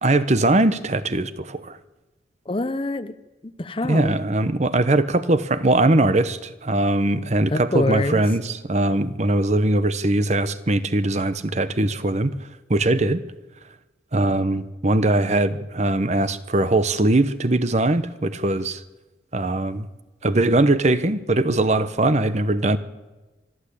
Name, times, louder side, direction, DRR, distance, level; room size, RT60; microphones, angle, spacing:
voice 1, 0.0-1.8 3.9-12.3 12.7-13.2 14.1-18.8 19.3-19.9 20.2-22.8, right 2 dB, 40° right, 0.9 m, -21 dB
voice 2, 2.5-3.2 3.6-4.2 7.5-8.2, left 2 dB, 30° left, 0.7 m, -25 dB
25.0 x 12.0 x 8.5 m
head